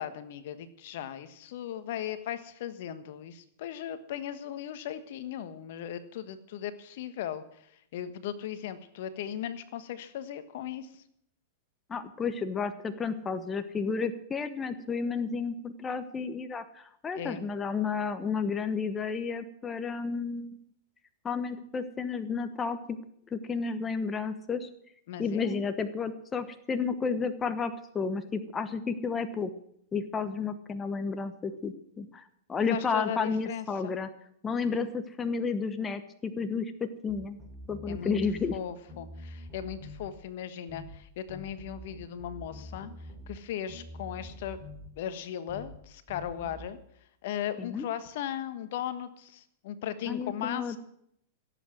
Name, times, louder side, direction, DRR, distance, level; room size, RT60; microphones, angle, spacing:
voice 1, 0.0-7.7 7.9-11.0 17.1-17.4 25.1-25.6 32.7-33.9 34.7-34.9 37.9-38.2 38.5-42.9 43.3-44.6 45.0-46.8 47.2-50.8, left 10 dB, 65° left, 12 dB, 1.4 m, -37 dB
voice 2, 11.9-20.6 21.2-23.0 23.3-24.7 25.2-29.5 29.9-32.2 32.5-34.1 34.4-37.4 37.7-38.6 47.6-47.8 50.1-50.8, left 5 dB, 20° left, 10 dB, 1.1 m, -32 dB
sound 1, 37.1-38.6 38.9-40.1 40.7-41.0 41.3-43.4 43.7-44.9 45.5-45.8 46.1-46.7, left 1 dB, 20° right, 4.3 m, -45 dB
16.5 x 8.2 x 7.7 m, 0.72 s
hypercardioid pair, 120°, 0 cm